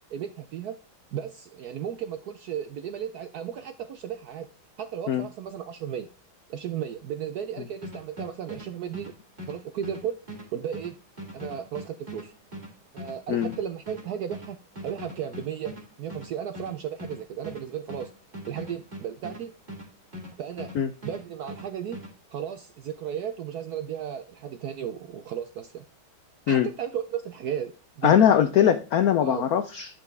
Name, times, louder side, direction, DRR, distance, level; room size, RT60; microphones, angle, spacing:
voice 1, 0.1-0.7 1.1-4.5 4.8-6.1 6.5-9.1 9.5-10.2 10.5-11.0 11.3-12.3 12.9-14.6 14.8-18.1 18.5-19.5 20.4-20.7 21.0-22.0 22.3-25.8 26.5-28.2 29.2-29.5, right 9 dB, 75° right, 10 dB, 0.9 m, -34 dB
sound 1, 7.8-20.8 21.0-22.1, equal, 20° right, 2.3 m, -41 dB
voice 2, 28.0-29.9, left 9 dB, 75° left, 10 dB, 0.8 m, -21 dB
8.7 x 5.8 x 3.2 m, 0.35 s
omnidirectional pair, 2.2 m